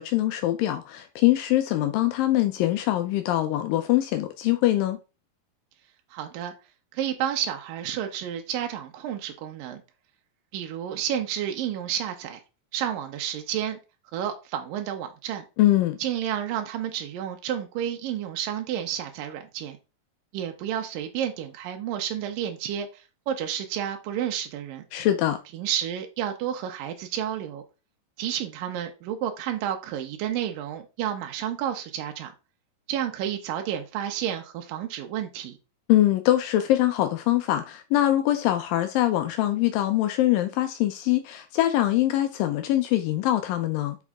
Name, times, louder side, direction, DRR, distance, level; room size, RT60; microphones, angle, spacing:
voice 1, 0.0-5.0 15.6-16.0 24.9-25.4 35.9-44.0, left 14 dB, 85° left, 2.3 m, -23 dB
voice 2, 6.1-6.5 6.9-9.8 10.5-12.4 12.7-13.8 14.1-15.4 16.0-19.8 20.3-24.8 25.5-27.6 28.2-32.3 32.9-35.6, right 10 dB, 80° right, 2.5 m, -31 dB
6.0 x 5.4 x 3.5 m
omnidirectional pair, 4.0 m